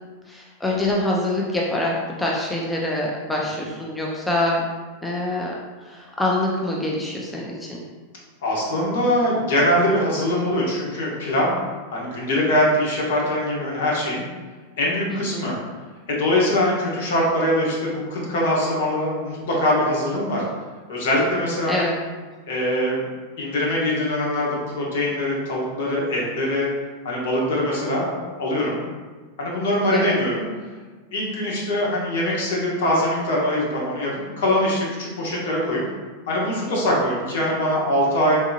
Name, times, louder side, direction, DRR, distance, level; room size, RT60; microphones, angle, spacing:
voice 1, 0.3-4.6 5.0-5.5 5.8-7.8 15.1-15.5 21.7-22.0 29.9-30.2, left 1 dB, 5° left, -3 dB, 0.3 m, -25 dB
voice 2, 8.4-11.5 11.9-14.3 14.8-15.6 16.1-20.4 20.9-21.9 22.5-23.0 23.4-26.7 27.0-28.8 29.4-30.4 31.1-34.1 34.4-35.8 36.3-38.4, left 1 dB, 70° left, -4 dB, 1.1 m, -22 dB
3.6 x 2.7 x 2.7 m, 1.4 s
supercardioid pair, 165°, 0 cm